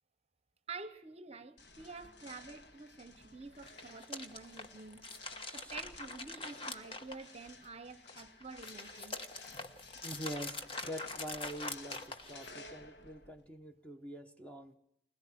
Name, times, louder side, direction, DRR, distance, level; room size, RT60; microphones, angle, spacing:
voice 1, 0.7-5.1 5.5-9.2, right 4 dB, 35° right, 0.9 m, -48 dB
sound 1, 1.6-13.5, left 3 dB, 80° left, 1.7 m, -55 dB
sound 2, 3.5-7.7 8.0-12.7, left 2 dB, 30° left, 1.3 m, -44 dB
voice 2, 10.0-14.7, equal, 5° left, 1.1 m, -45 dB
21.0 x 21.0 x 8.6 m
head